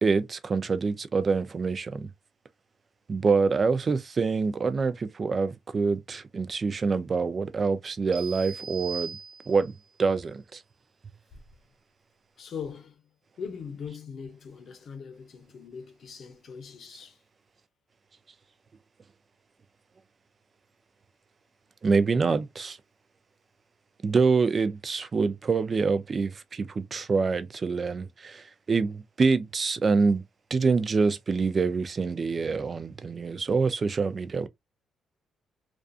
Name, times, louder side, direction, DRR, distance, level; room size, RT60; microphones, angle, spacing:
voice 1, 0.0-2.1 3.1-9.2 9.5-10.6 21.8-22.8 24.0-30.2 30.5-34.5, right 4 dB, 40° right, 0.4 m, -26 dB
sound 1, 8.1-9.8, right 5 dB, 75° right, 0.7 m, -39 dB
voice 2, 12.4-13.0 13.4-17.2, left 6 dB, 55° left, 0.7 m, -41 dB
2.5 x 2.4 x 2.4 m
cardioid pair, 90°, 0 cm